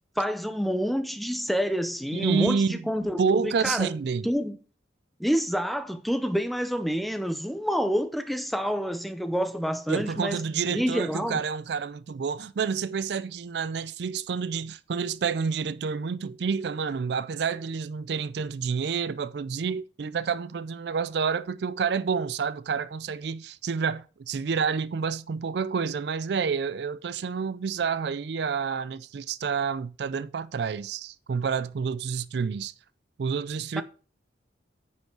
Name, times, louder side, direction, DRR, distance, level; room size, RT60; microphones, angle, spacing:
voice 1, 0.2-3.9 4.2-4.6 5.2-10.4 10.7-11.4 33.8-33.9, equal, ahead, 0.6 m, -28 dB
voice 2, 2.1-2.8 3.2-4.3 9.9-32.7 33.2-33.8, right 6 dB, 65° right, 0.4 m, -29 dB
9.3 x 5.5 x 4.5 m
head